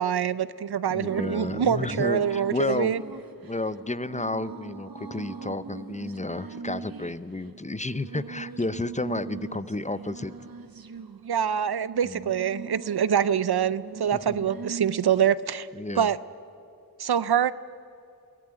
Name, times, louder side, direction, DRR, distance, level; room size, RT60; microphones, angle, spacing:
voice 1, 0.0-3.0 11.2-15.7 16.0-16.2 17.0-17.5, right 8 dB, 90° right, 17 dB, 0.6 m, -25 dB
voice 2, 0.9-2.9 3.4-10.3 12.0-12.3 14.1-14.5 15.7-16.1, left 2 dB, 20° left, 15 dB, 0.6 m, -31 dB
sound 1, 1.0-15.4, right 5 dB, 65° right, 1.0 m, -41 dB
23.0 x 15.5 x 8.9 m, 2.6 s
wide cardioid pair, 45°, 37 cm